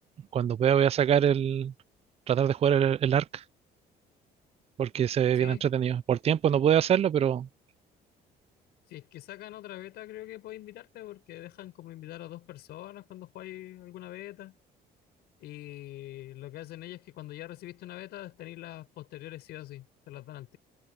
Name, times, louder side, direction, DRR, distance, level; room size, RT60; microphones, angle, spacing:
voice 1, 0.3-1.7 2.3-3.4 4.8-7.5, right 9 dB, 35° right, 0.5 m, -24 dB
voice 2, 5.4-5.7 8.9-14.6 15.4-20.6, left 15 dB, 75° left, 4.8 m, -44 dB
cardioid pair, 110°, 17 cm